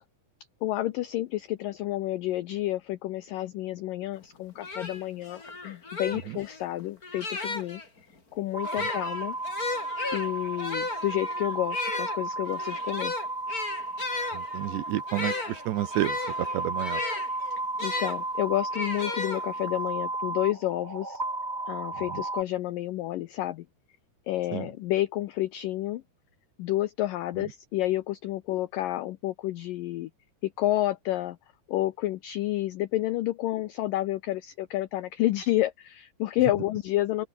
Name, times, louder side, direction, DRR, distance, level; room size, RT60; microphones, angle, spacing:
voice 1, 0.6-7.8 8.3-9.4 10.1-13.2 17.8-21.2 21.7-23.7 24.3-26.0 26.6-30.1 30.4-31.4 31.7-37.3, left 15 dB, 75° left, 2.1 m, -30 dB
sound 1, 4.2-4.3 4.6-7.9 8.6-18.2 18.7-19.8, left 3 dB, 20° left, 3.8 m, -35 dB
sound 2, 8.5-22.4, right 2 dB, 15° right, 2.2 m, -34 dB
voice 2, 14.3-17.0 22.1-22.2 24.5-24.7 27.4-27.5, right 14 dB, 85° right, 3.6 m, -31 dB
open air
omnidirectional pair, 4.9 m